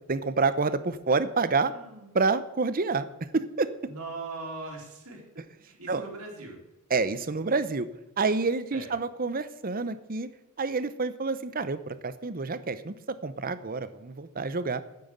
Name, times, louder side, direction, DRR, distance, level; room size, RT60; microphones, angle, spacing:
voice 1, 0.1-1.7 2.1-3.1 3.3-3.7 5.9-6.0 6.9-7.9 8.2-10.3 10.6-14.8, right 4 dB, 40° right, 14 dB, 0.8 m, -28 dB
voice 2, 1.6-2.1 3.9-5.2 5.6-6.6 8.7-8.9, right 3 dB, 80° right, 0 dB, 3.9 m, -40 dB
9.5 x 9.0 x 8.1 m, 0.97 s
head